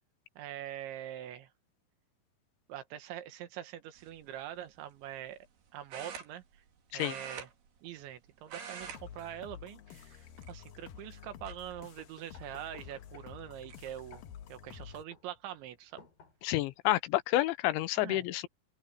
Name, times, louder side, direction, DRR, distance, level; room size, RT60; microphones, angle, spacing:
voice 1, 0.4-1.5 2.7-5.5 5.7-6.4 6.9-7.5 7.8-14.2 14.5-16.1 18.0-18.3, right 11 dB, 75° right, 3.8 m, -44 dB
sound 1, 4.0-4.3 5.9-6.7 7.0-8.2 8.4-9.0 9.3-9.6 10.3-10.9 11.5-11.6 13.0-13.1 13.4-13.8, right 6 dB, 60° right, 4.5 m, -45 dB
sound 2, 8.8-15.0, left 9 dB, 70° left, 2.3 m, -50 dB
sound 3, 11.8-16.8, left 6 dB, 50° left, 5.3 m, -59 dB
voice 2, 16.4-18.5, left 15 dB, 85° left, 3.2 m, -29 dB
open air
omnidirectional pair, 5.4 m